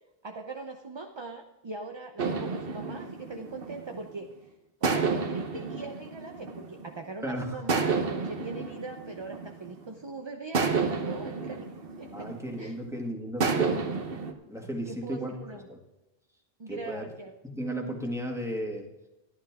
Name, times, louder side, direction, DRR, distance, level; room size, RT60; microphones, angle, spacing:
voice 1, 0.2-4.3 4.8-11.7 12.0-12.3 12.6-12.7 14.9-15.7 16.6-17.3, right 3 dB, 30° right, 4 dB, 0.7 m, -41 dB
sound 1, 2.2-4.2 4.8-7.1 7.7-9.9 10.5-12.7 13.4-14.3, right 4 dB, 65° right, 1.2 m, -31 dB
voice 2, 7.2-7.6 12.1-14.1 14.5-15.8 16.7-17.1 17.4-18.9, equal, 5° right, 1 dB, 1.7 m, -35 dB
13.5 x 11.0 x 3.6 m, 0.99 s
omnidirectional pair, 1.0 m